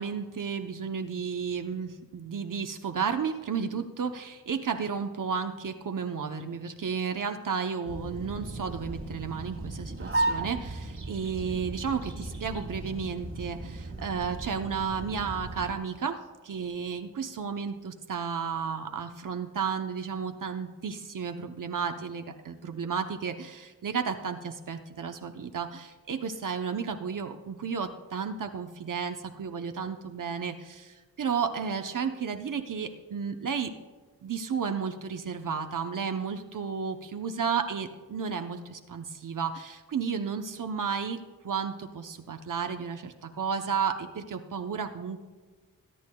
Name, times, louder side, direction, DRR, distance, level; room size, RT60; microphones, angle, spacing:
voice 1, 0.0-16.2 16.4-33.7 34.2-41.2 41.4-45.2, right 6 dB, 60° right, 5 dB, 0.8 m, -33 dB
sound 1, 7.9-15.7, right 2 dB, 35° right, 1.7 m, -35 dB
20.5 x 10.0 x 2.3 m, 1.4 s
wide cardioid pair, 100°, 36 cm